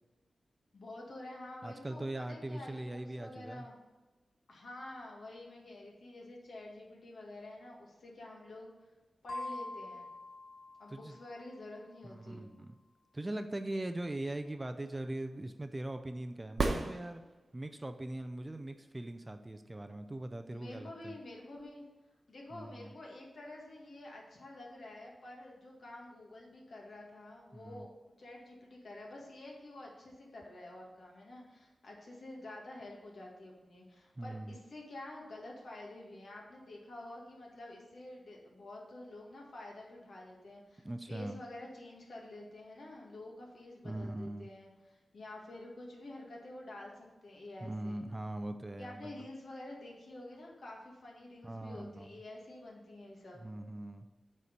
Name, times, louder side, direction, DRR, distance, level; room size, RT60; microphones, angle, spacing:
voice 1, 0.7-3.8 4.5-8.9 9.2-10.1 10.8-12.5 20.5-21.8 22.3-27.9 28.2-48.0 48.8-53.5, left 1 dB, 60° left, -2 dB, 1.9 m, -49 dB
voice 2, 1.6-3.6 10.9-11.2 12.0-12.8 13.1-17.2 17.5-21.1 22.5-22.9 27.5-27.8 34.2-34.6 40.8-41.4 43.8-44.5 47.6-49.2 51.4-52.1 53.4-54.1, right 1 dB, 15° right, 7 dB, 0.4 m, -41 dB
sound 1, 9.3-11.8, left 2 dB, 80° left, 0.8 m, -45 dB
sound 2, 16.6-17.7 21.6-21.7, right 3 dB, 50° right, 1.0 m, -34 dB
9.2 x 4.3 x 6.7 m, 1.2 s
wide cardioid pair, 180°, 0 cm